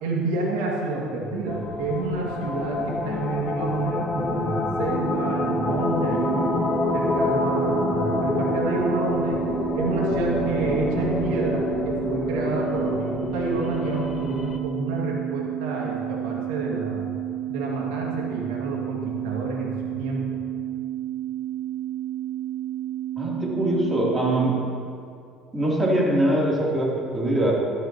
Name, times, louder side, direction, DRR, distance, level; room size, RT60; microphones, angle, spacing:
voice 1, 0.0-6.5 6.9-17.0 17.5-20.4, right 2 dB, 85° right, -3 dB, 2.1 m, -29 dB
sound 1, 1.5-14.6, left 3 dB, 25° left, 1.0 m, -27 dB
sound 2, 4.9-24.4, right 13 dB, 50° right, 0.8 m, -31 dB
voice 2, 23.2-24.6 25.5-27.5, right 1 dB, 20° right, -4 dB, 3.1 m, -22 dB
13.0 x 12.5 x 3.0 m, 2.4 s
supercardioid pair, 100°, 0 cm